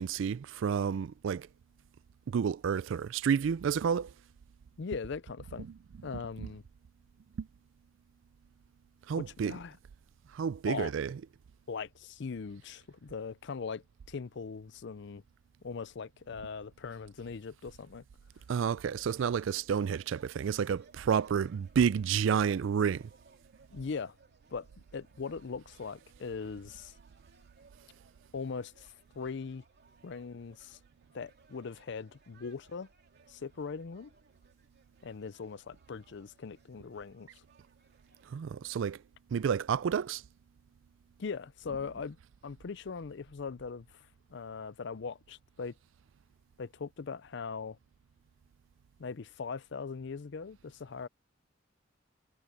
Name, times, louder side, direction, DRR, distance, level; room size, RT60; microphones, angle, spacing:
voice 1, 0.0-1.5 2.3-4.1 5.6-5.7 6.4-6.5 7.4-7.5 9.1-9.6 10.3-11.2 18.5-23.1 38.3-39.0 39.3-40.2, right 7 dB, 70° right, 0.3 m, -30 dB
voice 2, 4.8-5.7 6.0-6.6 9.2-9.7 10.6-10.9 11.7-15.2 15.6-18.0 23.7-24.2 24.5-26.9 28.3-29.6 30.0-30.8 31.1-32.9 33.3-34.1 35.0-37.4 41.2-42.2 42.4-45.8 46.6-47.8 49.0-51.1, left 5 dB, 60° left, 0.5 m, -40 dB
sound 1, 19.7-38.3, right 4 dB, 55° right, 3.1 m, -65 dB
head